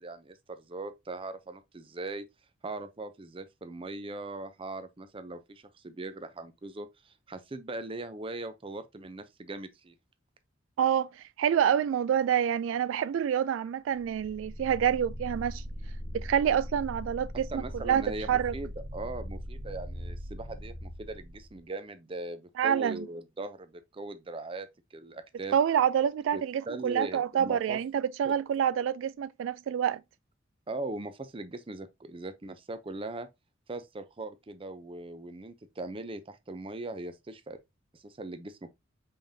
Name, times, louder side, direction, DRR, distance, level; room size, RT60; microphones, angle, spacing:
voice 1, 0.0-2.2 2.6-10.0 17.5-25.5 26.3-27.8 28.2-28.4 30.7-33.3 33.7-37.6 37.9-38.7, right 2 dB, 30° right, 0.6 m, -40 dB
voice 2, 10.8-15.6 16.1-18.5 22.6-23.1 25.5-30.0, right 9 dB, 90° right, 0.3 m, -27 dB
sound 1, 14.0-21.7, equal, 50° right, 1.4 m, -40 dB
5.2 x 3.7 x 2.7 m
head